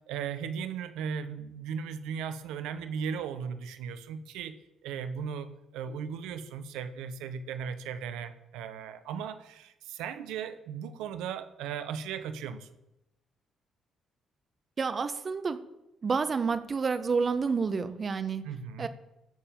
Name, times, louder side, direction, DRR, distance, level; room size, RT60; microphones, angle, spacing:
voice 1, 0.1-4.5 4.8-12.7 18.4-18.9, right 7 dB, 80° right, 10 dB, 1.1 m, -37 dB
voice 2, 14.8-15.6 16.0-18.4 18.8-18.9, right 5 dB, 45° right, 11 dB, 1.3 m, -29 dB
16.0 x 6.8 x 7.6 m, 0.90 s
hypercardioid pair, 45°, 0 cm